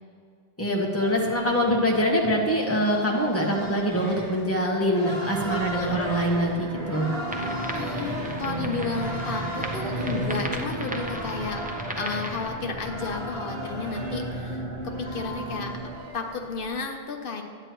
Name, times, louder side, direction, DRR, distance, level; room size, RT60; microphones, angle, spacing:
voice 1, 0.6-7.1, equal, 15° left, -2 dB, 1.2 m, -24 dB
sound 1, 1.0-16.8, right 1 dB, 30° right, 1.6 m, -38 dB
sound 2, 5.2-16.0, right 1 dB, 55° right, 1.0 m, -35 dB
sound 3, 7.3-12.5, right 1 dB, 10° right, 0.6 m, -36 dB
voice 2, 7.7-11.6 12.0-17.4, left 4 dB, 65° left, 4 dB, 0.8 m, -32 dB
11.0 x 8.8 x 3.0 m, 2.4 s
omnidirectional pair, 1.0 m